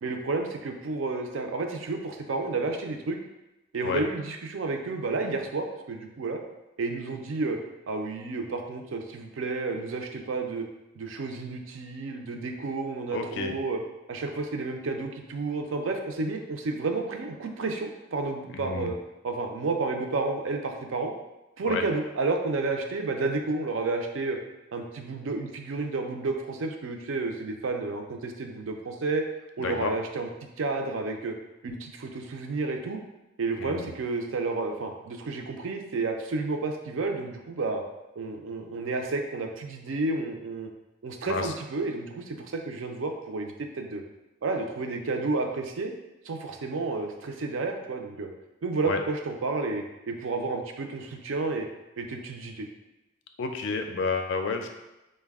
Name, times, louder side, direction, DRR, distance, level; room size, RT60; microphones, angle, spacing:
voice 1, 0.0-3.2 3.7-6.4 6.8-7.6 7.9-10.6 11.0-13.8 14.1-18.9 19.2-21.1 21.6-24.4 24.7-29.2 29.6-30.3 30.6-31.3 31.6-33.0 33.4-37.8 38.2-40.7 41.0-44.0 44.4-45.9 46.3-48.3 48.6-51.7 52.0-52.7, right 3 dB, 70° right, 4 dB, 0.4 m, -31 dB
voice 2, 13.1-13.5 18.5-18.9 21.6-21.8 29.6-29.9 33.6-33.9 41.3-41.5 48.8-49.0 53.4-54.7, left 4 dB, 60° left, 5 dB, 0.4 m, -30 dB
3.9 x 2.2 x 3.4 m, 0.98 s
head